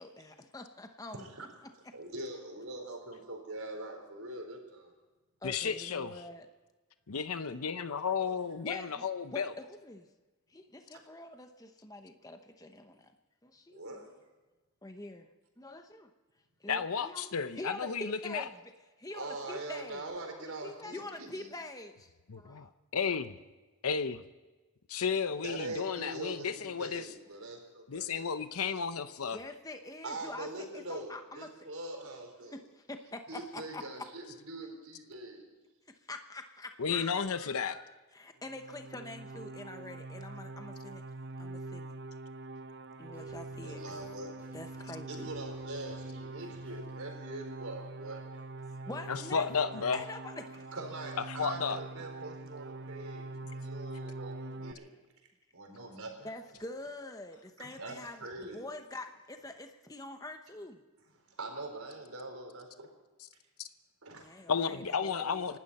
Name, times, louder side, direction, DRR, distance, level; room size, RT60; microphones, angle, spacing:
voice 1, 0.0-1.3 5.4-6.5 8.6-9.0 9.3-10.1 10.5-13.1 13.4-13.9 14.8-15.3 15.6-16.1 16.6-18.7 19.0-22.7 29.3-30.5 30.9-31.5 32.5-33.8 36.1-41.0 41.4-41.9 43.0-44.0 44.5-45.3 48.8-49.5 49.9-50.7 56.2-60.8 64.2-65.6, left 2 dB, 15° left, 6 dB, 0.9 m, -45 dB
voice 2, 1.1-1.5 1.9-4.9 7.4-8.4 13.7-14.2 19.1-21.5 25.4-28.3 30.0-32.6 33.3-35.5 43.6-44.3 45.0-48.2 48.7-48.8 50.7-54.9 55.5-56.3 57.6-58.6 61.2-62.9 64.0-64.3, right 2 dB, 75° right, 2 dB, 4.1 m, -43 dB
voice 3, 5.4-6.1 7.1-9.5 16.7-18.4 22.3-23.4 23.8-24.2 24.9-27.1 27.9-29.4 36.8-37.8 49.1-50.0 51.4-51.8 64.5-65.6, left 6 dB, 80° left, 11 dB, 0.8 m, -33 dB
sound 1, 38.4-54.7, right 2 dB, 50° right, 0.7 m, -44 dB
sound 2, 43.1-47.1, equal, 10° right, 7.3 m, -63 dB
28.0 x 12.5 x 4.2 m, 1.2 s
head